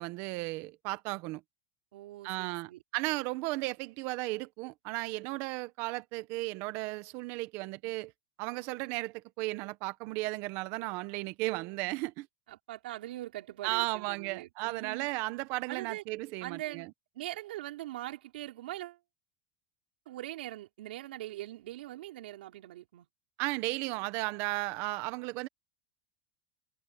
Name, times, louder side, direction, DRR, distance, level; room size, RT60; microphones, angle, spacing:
voice 1, 0.0-1.4 2.2-8.1 8.4-12.3 13.6-16.9 23.4-25.5, right 21 dB, 50° right, 1.2 m, -35 dB
voice 2, 1.9-2.8 12.5-15.1 15.7-16.0 16.4-16.9 17.1-19.0 20.0-23.1, right 15 dB, 90° right, 4.8 m, -42 dB
supercardioid pair, 160°, 5 cm